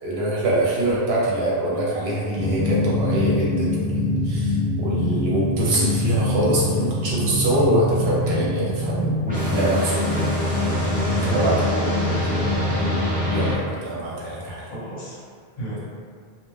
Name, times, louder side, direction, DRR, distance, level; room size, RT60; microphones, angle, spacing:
voice 1, 0.0-10.3 11.1-11.7 13.3-14.6, right 1 dB, 80° right, -6 dB, 1.0 m, -24 dB
sound 1, 2.3-13.5, left 1 dB, 10° right, 0.4 m, -23 dB
voice 2, 11.1-12.5 14.7-15.2 15.6-15.8, equal, 45° left, -7 dB, 0.8 m, -33 dB
2.3 x 2.2 x 3.2 m, 2.1 s
omnidirectional pair, 1.0 m